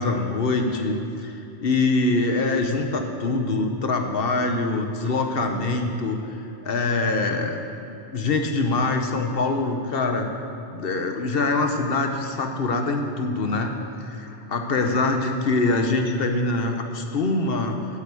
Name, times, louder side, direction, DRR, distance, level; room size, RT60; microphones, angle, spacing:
voice 1, 0.0-6.2 6.6-7.6 7.9-10.3 10.7-13.7 14.0-17.8, left 3 dB, 60° left, 4 dB, 1.2 m, -24 dB
8.2 x 7.7 x 8.4 m, 2.9 s
omnidirectional pair, 1.1 m